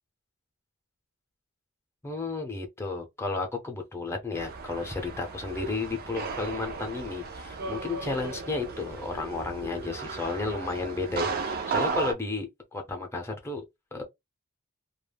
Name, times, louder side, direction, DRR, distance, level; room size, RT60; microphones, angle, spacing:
voice 1, 2.0-13.6 13.9-14.0, left 3 dB, 10° left, 0.6 m, -33 dB
sound 1, 4.3-12.1, right 4 dB, 45° right, 0.4 m, -35 dB
2.2 x 2.0 x 3.3 m
head